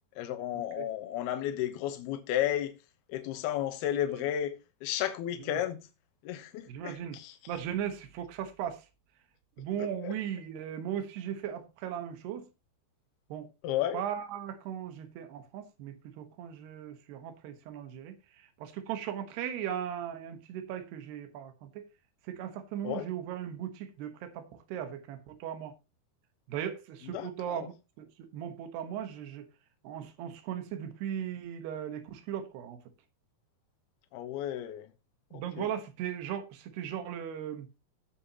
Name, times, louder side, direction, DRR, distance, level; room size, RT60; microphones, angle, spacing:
voice 1, 0.2-2.7 3.1-5.9 6.2-7.4 9.8-10.1 13.6-14.0 22.8-23.1 27.0-27.7 34.1-34.9 35.3-35.7, left 11 dB, 75° left, 3.0 m, -33 dB
voice 2, 6.7-7.2 7.5-8.8 9.6-12.5 13.3-13.5 13.9-18.2 18.6-21.9 22.3-25.7 26.5-29.5 29.8-32.8 35.3-37.7, right 9 dB, 80° right, 3.4 m, -37 dB
16.5 x 7.2 x 2.9 m
omnidirectional pair, 4.8 m